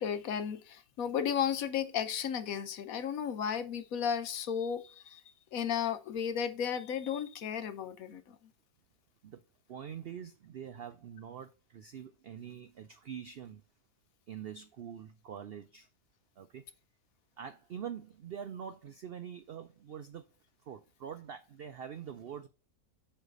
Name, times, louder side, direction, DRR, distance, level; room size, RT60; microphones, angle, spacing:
voice 1, 0.0-5.2 5.5-8.4, left 8 dB, 70° left, 1.1 m, -34 dB
voice 2, 9.7-13.6 14.3-15.9 16.4-16.6 17.4-20.3 20.6-22.5, right 8 dB, 75° right, 0.5 m, -44 dB
8.0 x 3.3 x 5.2 m
omnidirectional pair, 1.6 m